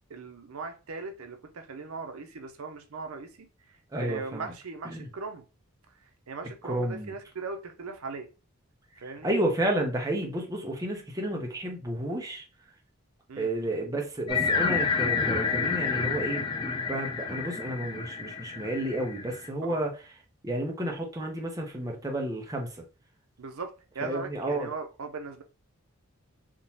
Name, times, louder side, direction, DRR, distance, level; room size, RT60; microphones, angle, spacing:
voice 1, 0.1-5.4 6.3-8.3 9.0-9.3 13.3-13.5 19.7-19.8 23.4-25.4, right 4 dB, 85° right, 0.6 m, -39 dB
voice 2, 3.9-4.5 4.8-5.1 6.6-7.1 9.2-12.4 13.4-19.9 20.4-22.8 24.0-24.7, right 1 dB, 15° right, 0.6 m, -31 dB
sound 1, 14.3-19.5, left 5 dB, 20° left, 0.3 m, -29 dB
3.6 x 2.9 x 2.7 m
head